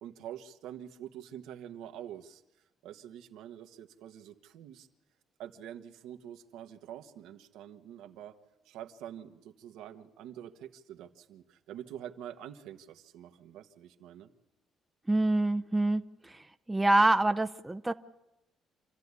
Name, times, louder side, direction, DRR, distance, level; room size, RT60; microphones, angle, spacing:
voice 1, 0.0-2.4 2.8-4.9 5.4-8.4 8.6-14.3, right 10 dB, 85° right, 6 dB, 1.4 m, -46 dB
voice 2, 15.1-16.0 16.7-17.9, right 2 dB, 10° right, 9 dB, 0.7 m, -25 dB
27.0 x 13.5 x 9.7 m, 0.96 s
cardioid pair, 115°, 0 cm